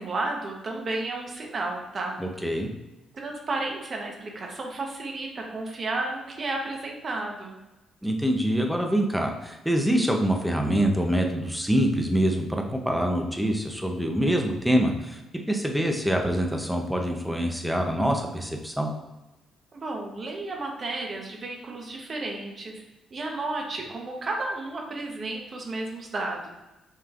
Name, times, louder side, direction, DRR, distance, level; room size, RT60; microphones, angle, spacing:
voice 1, 0.0-2.2 3.1-7.6 19.7-22.8 23.1-26.5, right 2 dB, 40° right, 0 dB, 1.0 m, -32 dB
voice 2, 2.2-2.7 8.0-15.2 15.5-18.9, equal, 5° right, 2 dB, 0.7 m, -25 dB
5.6 x 3.1 x 2.5 m, 1.0 s
cardioid pair, 90°, 0 cm